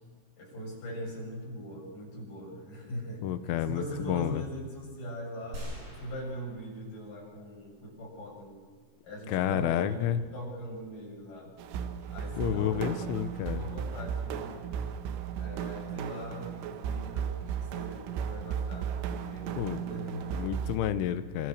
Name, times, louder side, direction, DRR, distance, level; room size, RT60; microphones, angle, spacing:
voice 1, 0.4-5.7 6.0-8.6 9.0-11.5 12.1-14.7 15.4-20.4, equal, 45° left, -2 dB, 8.9 m, -41 dB
voice 2, 3.2-4.4 9.3-10.2 12.4-13.6 19.6-19.9 20.3-21.5, left 11 dB, 85° left, 11 dB, 3.4 m, -30 dB
sound 1, 5.5-7.3 7.8-7.9, equal, 40° right, 8.9 m, -43 dB
sound 2, 11.6-20.8, right 7 dB, 85° right, 3.9 m, -35 dB
26.5 x 26.0 x 6.6 m, 1.5 s
omnidirectional pair, 5.5 m